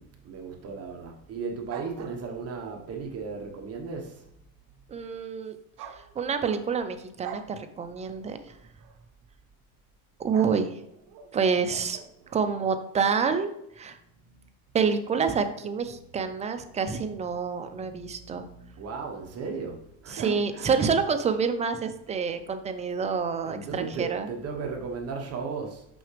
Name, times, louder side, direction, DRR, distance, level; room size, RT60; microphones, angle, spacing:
voice 1, 0.0-4.3 8.0-8.1 8.5-8.6 14.3-14.5 17.7-18.2 18.5-20.9 23.5-25.9, right 5 dB, 35° right, 1.1 m, -36 dB
sound 1, 1.7-2.6 5.8-6.8 7.2-7.5 8.8-9.0 10.3-12.5, right 8 dB, 55° right, 0.9 m, -45 dB
voice 2, 4.9-5.6 5.9-8.4 10.2-10.8 11.3-12.0 12.3-13.5 13.8-14.0 14.7-18.4 20.1-24.3, right 6 dB, 20° right, 0.3 m, -27 dB
6.2 x 5.8 x 3.2 m
supercardioid pair, 125°, 43 cm